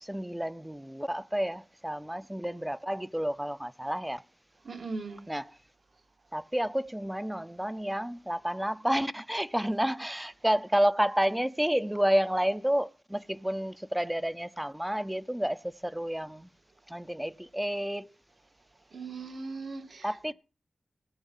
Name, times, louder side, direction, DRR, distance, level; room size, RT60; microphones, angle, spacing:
voice 1, 0.0-4.2 5.3-5.5 6.3-16.5 16.9-18.1 20.0-20.3, equal, 5° right, 0.5 m, -30 dB
voice 2, 4.6-5.2 18.9-20.3, right 3 dB, 70° right, 2.0 m, -39 dB
15.0 x 8.2 x 5.5 m
wide cardioid pair, 120°, 0 cm